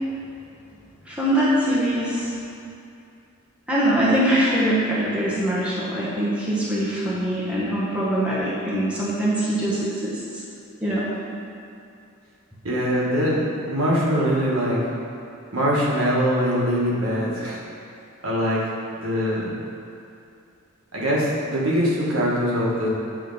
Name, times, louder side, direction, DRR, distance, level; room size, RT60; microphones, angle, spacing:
voice 1, 1.1-2.4 3.7-10.2 10.8-11.1, right 1 dB, 5° right, -7 dB, 1.0 m, -23 dB
voice 2, 12.6-14.8 15.5-17.6 18.2-18.6 18.9-19.5 20.9-22.9, equal, 75° right, -5 dB, 1.4 m, -22 dB
7.7 x 3.1 x 5.4 m, 2.6 s
head